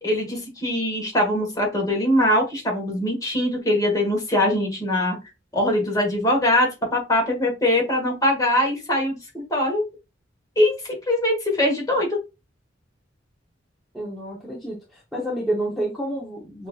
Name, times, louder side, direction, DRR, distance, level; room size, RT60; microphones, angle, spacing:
voice 1, 0.0-5.2 5.5-9.8 10.5-12.1, left 1 dB, 20° left, 0 dB, 1.4 m, -22 dB
voice 2, 13.9-16.7, right 1 dB, ahead, -5 dB, 0.8 m, -29 dB
5.9 x 2.7 x 2.3 m, 0.26 s
head